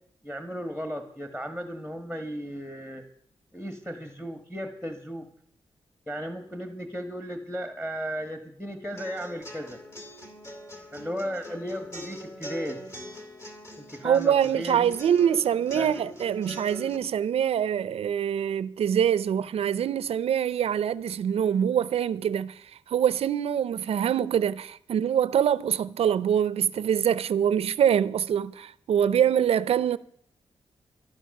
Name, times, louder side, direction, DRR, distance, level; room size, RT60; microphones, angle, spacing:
voice 1, 0.2-3.0 3.5-5.3 6.1-9.8 10.9-12.8 13.8-14.9 15.7-15.9, equal, 5° left, 1.4 m, -35 dB
sound 1, 9.0-17.0, equal, 30° left, 2.5 m, -42 dB
voice 2, 14.0-30.0, right 9 dB, 85° right, 0.5 m, -24 dB
13.0 x 11.5 x 6.5 m
wide cardioid pair, 100°, 10 cm